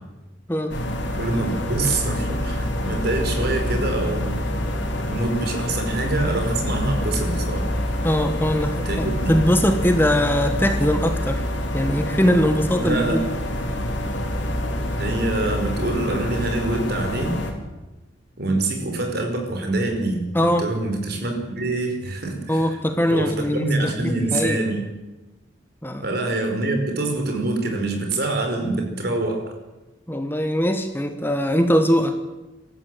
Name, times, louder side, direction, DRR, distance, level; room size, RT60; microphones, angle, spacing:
sound 1, 0.7-17.5, left 1 dB, 70° left, 3.9 m, -26 dB
voice 1, 1.2-4.4 5.0-7.7 8.7-9.3 12.8-13.2 15.0-17.4 18.4-22.8 23.1-24.9 26.0-29.5, right 2 dB, 55° right, 4 dB, 4.9 m, -25 dB
voice 2, 8.0-11.4 11.7-13.2 20.3-20.7 22.5-24.6 25.8-26.0 30.1-32.2, equal, 10° left, 7 dB, 1.3 m, -21 dB
25.0 x 13.5 x 9.1 m, 1.1 s
head